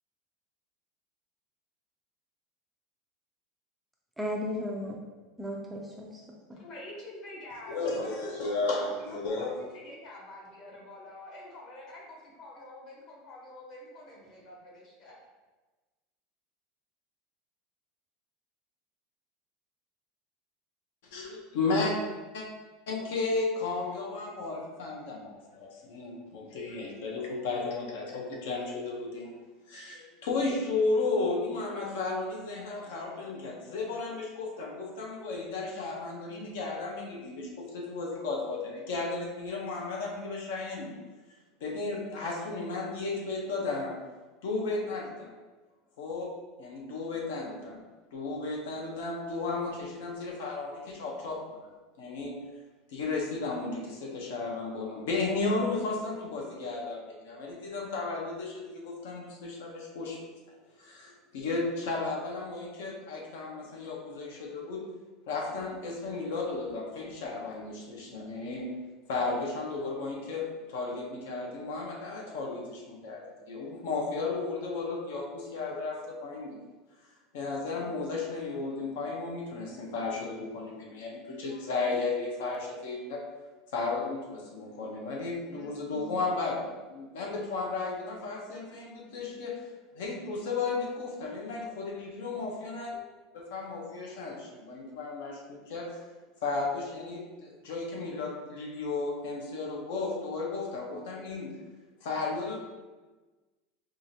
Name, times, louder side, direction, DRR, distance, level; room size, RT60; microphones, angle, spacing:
voice 1, 4.2-5.0 5.4-6.6, left 1 dB, ahead, -2 dB, 0.3 m, -35 dB
voice 2, 6.6-15.1, left 1 dB, 35° left, -3 dB, 1.0 m, -47 dB
voice 3, 7.7-9.5 21.1-21.9 22.3-22.4 22.9-29.3 29.7-41.0 41.6-44.0 44.4-45.3 46.0-46.3 46.6-47.8 48.1-51.6 52.0-52.4 52.9-60.2 60.8-64.8 65.3-68.8 69.1-76.6 77.3-83.2 83.7-89.6 89.9-93.0 93.3-96.0 96.4-101.6 102.0-102.6, left 3 dB, 75° left, -1 dB, 0.8 m, -34 dB
4.7 x 2.5 x 2.7 m, 1.2 s
supercardioid pair, 175°, 0 cm